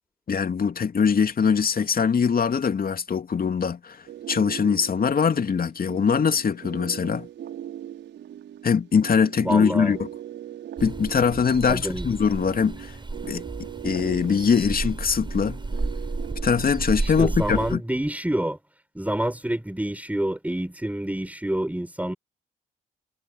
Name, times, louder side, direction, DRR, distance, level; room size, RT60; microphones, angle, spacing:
voice 1, 0.3-7.3 8.6-10.1 10.8-13.0 13.2-13.5 13.8-15.6 16.4-17.8, left 6 dB, 45° left, 2.8 m, -22 dB
sound 1, 4.1-17.7, right 11 dB, 65° right, 5.9 m, -40 dB
voice 2, 9.4-10.0 11.7-12.1 17.2-18.6 18.9-22.1, right 1 dB, 5° right, 6.7 m, -27 dB
sound 2, 10.8-17.8, right 2 dB, 25° right, 7.9 m, -32 dB
hypercardioid pair, 50°, 20 cm